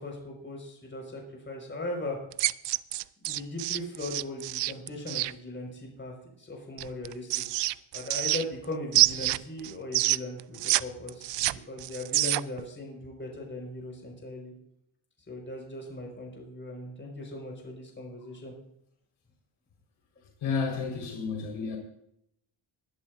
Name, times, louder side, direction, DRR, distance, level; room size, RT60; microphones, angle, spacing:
voice 1, 0.0-2.2 3.2-7.4 7.9-14.5 15.3-18.5 21.6-21.7, left 2 dB, 25° left, 5.3 m, -39 dB
sound 1, 2.3-5.3 6.8-8.6 8.9-10.8 11.1-12.6, right 16 dB, 60° right, 0.5 m, -27 dB
voice 2, 20.4-21.8, left 5 dB, 70° left, 4.8 m, -31 dB
21.0 x 11.5 x 2.7 m
cardioid pair, 105°, 49 cm